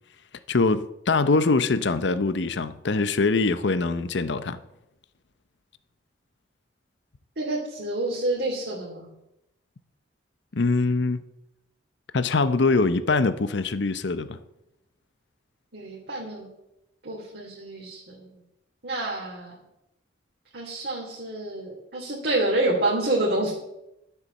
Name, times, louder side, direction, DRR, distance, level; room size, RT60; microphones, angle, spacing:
voice 1, 0.5-4.6 10.5-11.2 12.1-14.4, left 3 dB, 65° left, 0.7 m, -23 dB
voice 2, 7.4-9.1 15.7-16.5 17.0-18.3 18.8-19.6 20.5-23.5, right 2 dB, 55° right, 3.0 m, -28 dB
12.0 x 8.1 x 7.2 m
head